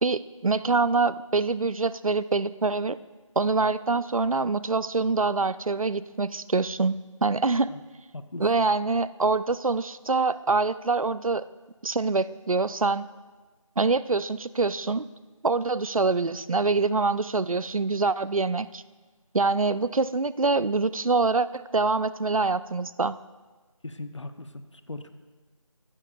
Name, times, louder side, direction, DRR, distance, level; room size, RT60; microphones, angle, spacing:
voice 1, 0.0-3.0 3.4-7.0 7.2-7.7 8.4-11.5 11.8-13.1 13.8-15.0 15.4-18.8 19.3-23.1, right 3 dB, 90° right, 16 dB, 0.5 m, -25 dB
voice 2, 23.8-25.1, left 2 dB, 60° left, 9 dB, 0.8 m, -39 dB
14.5 x 13.0 x 2.4 m, 1.3 s
figure-of-eight pair, 165°, 17 cm